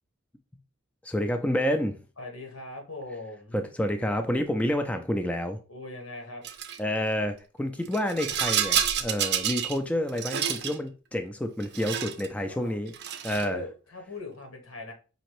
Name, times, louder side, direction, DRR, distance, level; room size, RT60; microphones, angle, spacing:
voice 1, 1.0-2.0 3.5-5.6 6.8-12.9 13.2-13.6, left 1 dB, 5° left, 0.4 m, -29 dB
voice 2, 2.2-3.7 5.7-6.4 12.3-12.7 13.3-14.9, left 2 dB, 90° left, 1.5 m, -40 dB
Rattle, 6.4-6.8 7.8-9.8 10.1-10.8 11.6-12.3 12.9-13.5, right 9 dB, 55° right, 0.5 m, -29 dB
5.1 x 2.9 x 3.0 m
head